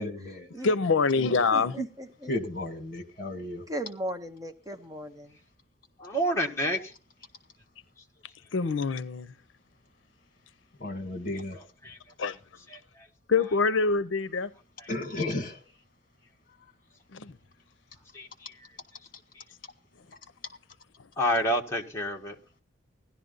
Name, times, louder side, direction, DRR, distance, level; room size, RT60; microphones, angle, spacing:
voice 1, 0.0-0.5 1.8-1.9 2.3-3.6 10.8-11.6 14.9-15.7 16.6-16.7, left 1 dB, 45° left, 2.0 m, -34 dB
voice 2, 0.6-1.8 8.5-9.3 12.2-12.4 13.3-14.5 17.1-17.4, left 4 dB, 75° left, 0.6 m, -25 dB
voice 3, 1.5-2.3 3.7-5.4, equal, 20° right, 0.8 m, -37 dB
voice 4, 6.0-6.9 11.8-12.0 12.7-13.1 14.8-14.9 18.1-18.7 19.3-19.4 21.2-22.4, equal, 15° left, 1.4 m, -29 dB
16.0 x 11.5 x 3.9 m
head